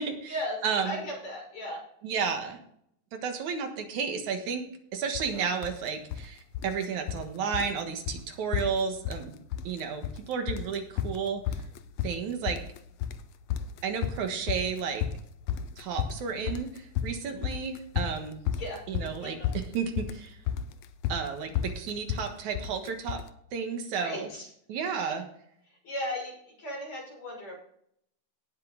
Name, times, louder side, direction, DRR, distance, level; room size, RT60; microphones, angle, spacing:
voice 1, 0.0-0.3 0.6-1.0 2.0-2.6 3.1-4.6 4.9-11.6 12.0-12.6 13.8-15.1 15.8-18.4 18.9-20.4 21.1-23.2 23.5-24.3 24.7-25.2, right 6 dB, 70° right, 5 dB, 2.8 m, -32 dB
voice 2, 0.8-1.8 5.3-5.6 18.6-18.8 19.2-19.5 23.9-24.5 25.0-25.2 25.7-27.6, left 1 dB, 55° left, -4 dB, 7.7 m, -36 dB
sound 1, 5.1-5.3 5.6-6.3 6.5-7.3 7.5-7.8 8.1-8.2 8.5-9.3 9.5-10.2 10.5-23.3, left 9 dB, 75° left, 1.5 m, -32 dB
18.0 x 7.5 x 3.9 m, 0.68 s
omnidirectional pair, 3.7 m